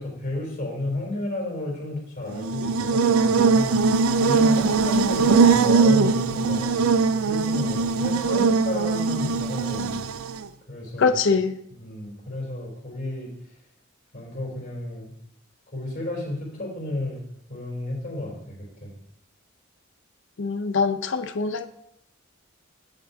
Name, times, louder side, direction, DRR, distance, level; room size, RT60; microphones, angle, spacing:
voice 1, 0.0-6.8 7.2-10.0 10.7-11.2 11.8-13.3 14.1-15.1 15.7-17.2 17.5-18.9, left 1 dB, 40° left, -3 dB, 3.4 m, -32 dB
Buzz, 2.3-10.5, right 4 dB, 80° right, 0.4 m, -21 dB
voice 2, 11.0-11.6 20.4-21.7, left 4 dB, 60° left, 10 dB, 0.6 m, -23 dB
15.0 x 5.1 x 2.7 m, 0.75 s
head